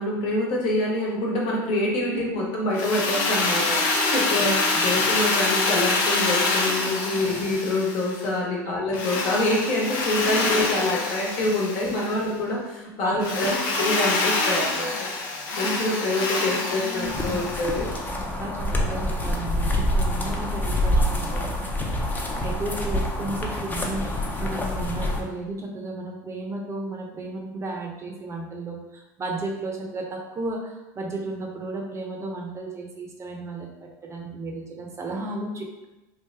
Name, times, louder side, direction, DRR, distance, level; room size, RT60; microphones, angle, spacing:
voice 1, 0.0-13.5 13.8-15.1 15.6-17.9, left 1 dB, 60° left, -3 dB, 1.2 m, -26 dB
voice 2, 2.1-2.5 4.3-5.0 7.2-7.4 8.6-8.8 10.2-10.8 11.8-12.2 13.0-13.6 16.4-17.5 18.1-21.7 22.4-35.9, right 2 dB, 30° right, 0 dB, 0.7 m, -34 dB
Drill, 2.7-8.3 8.9-12.2 13.2-18.0, left 3 dB, 80° left, 0.7 m, -26 dB
sound 1, 17.0-25.2, left 1 dB, 20° left, 0.6 m, -26 dB
3.3 x 2.5 x 3.4 m, 1.0 s
hypercardioid pair, 90°, 10 cm